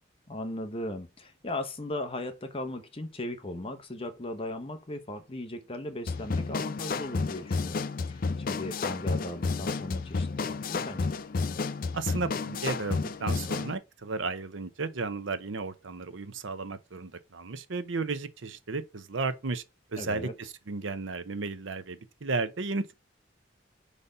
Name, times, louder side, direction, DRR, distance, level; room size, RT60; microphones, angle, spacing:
voice 1, 0.3-11.1 20.0-20.3, left 1 dB, 30° left, 0.9 m, -37 dB
sound 1, 6.1-13.7, left 4 dB, 45° left, 0.4 m, -31 dB
voice 2, 11.9-19.6 19.9-22.9, right 3 dB, 75° right, 0.8 m, -34 dB
5.1 x 4.2 x 5.4 m
head